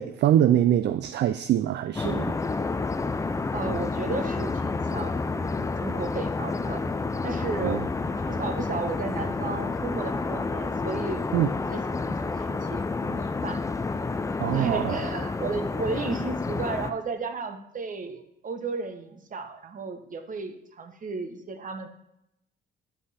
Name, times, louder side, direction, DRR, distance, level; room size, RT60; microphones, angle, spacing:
voice 1, 0.0-2.3 7.6-7.8 11.3-11.5 14.4-15.0, right 11 dB, 60° right, 12 dB, 0.4 m, -23 dB
sound 1, 1.9-16.9, left 3 dB, 15° left, 0.4 m, -29 dB
voice 2, 3.5-6.8 7.2-13.6 14.5-21.9, right 4 dB, 40° right, 8 dB, 1.1 m, -34 dB
9.8 x 5.4 x 4.2 m, 0.82 s
cardioid pair, 90°, 20 cm